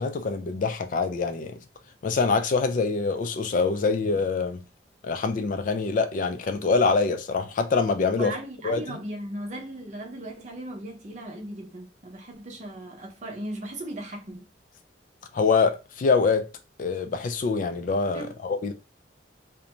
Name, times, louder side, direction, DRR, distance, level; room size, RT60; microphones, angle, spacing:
voice 1, 0.0-1.6 2.0-4.6 5.0-8.3 8.6-9.0 15.3-16.5 16.8-18.7, left 4 dB, 45° left, 0.3 m, -25 dB
voice 2, 8.1-14.4 18.1-18.3, right 1 dB, 40° right, 0.7 m, -37 dB
2.5 x 2.1 x 2.9 m
head